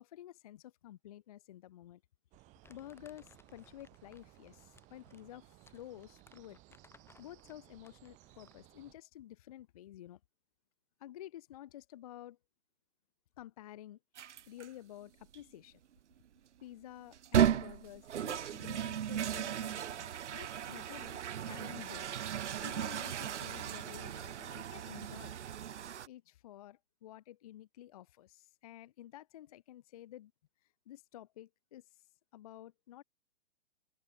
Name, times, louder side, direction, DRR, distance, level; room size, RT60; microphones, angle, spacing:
voice 1, 0.0-2.0 2.7-6.6 7.2-10.2 11.0-12.4 13.4-14.0 14.5-15.8 16.6-25.3 26.1-30.3 30.9-32.0 32.3-33.0, left 13 dB, 35° left, 0.5 m, -51 dB
sound 1, 2.3-9.0, right 21 dB, 20° right, 1.0 m, -61 dB
Crumpling crinkling, 2.6-8.7, left 4 dB, 5° left, 5.3 m, -65 dB
sound 2, 14.2-14.7 15.3-15.4 17.1-26.1, right 9 dB, 80° right, 0.5 m, -35 dB
figure-of-eight pair, 125°, 35 cm